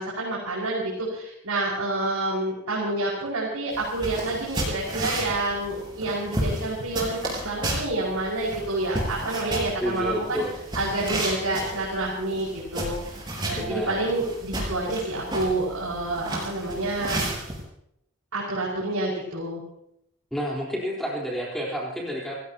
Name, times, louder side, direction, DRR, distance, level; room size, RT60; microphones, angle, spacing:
voice 1, 0.0-10.4 10.7-17.2 18.3-19.6, right 2 dB, 90° right, -5 dB, 5.6 m, -28 dB
sound 1, 3.7-17.6, right 1 dB, 20° right, 5.6 m, -33 dB
voice 2, 9.8-10.5 13.5-14.0 20.3-22.4, equal, ahead, -4 dB, 4.1 m, -29 dB
28.5 x 16.5 x 3.0 m, 0.76 s
head